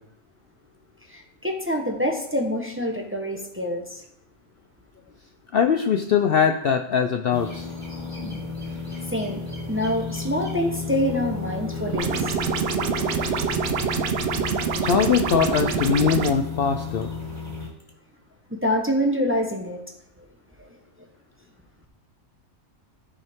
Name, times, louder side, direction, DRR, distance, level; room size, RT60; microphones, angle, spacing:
voice 1, 1.1-4.0 9.1-9.4 9.7-12.4 18.5-19.8 20.6-20.7, equal, 10° right, 2 dB, 0.8 m, -26 dB
voice 2, 5.5-7.7 14.8-17.1, left 7 dB, 60° left, 6 dB, 0.6 m, -21 dB
sound 1, 7.3-17.7, left 4 dB, 10° left, 2.8 m, -33 dB
sound 2, 11.9-16.3, right 6 dB, 60° right, 0.8 m, -26 dB
13.5 x 5.4 x 3.6 m, 0.77 s
omnidirectional pair, 1.3 m